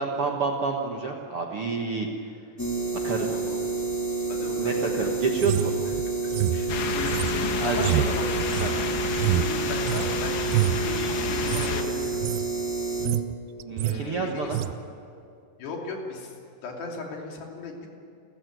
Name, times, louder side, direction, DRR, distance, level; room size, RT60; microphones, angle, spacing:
voice 1, 0.0-2.3 2.9-3.3 4.6-5.7 7.6-8.1 8.6-8.7 13.6-14.6, right 4 dB, 60° right, 1 dB, 1.4 m, -29 dB
sound 1, 2.6-13.1, right 4 dB, 5° left, 1.3 m, -29 dB
voice 2, 4.3-5.2 6.2-8.3 8.7-8.8 9.2-12.2 13.8-14.6 15.6-16.3 16.6-17.9, left 4 dB, 85° left, 0 dB, 5.1 m, -37 dB
sound 2, 5.4-10.1 10.4-10.9 11.4-11.7 12.0-12.5 12.8-13.3 13.6-14.0 14.5-14.7, right 13 dB, 80° right, 2.5 m, -27 dB
sound 3, 6.7-11.8, left 6 dB, 70° left, 3.2 m, -31 dB
30.0 x 14.0 x 9.3 m, 2.5 s
omnidirectional pair, 4.7 m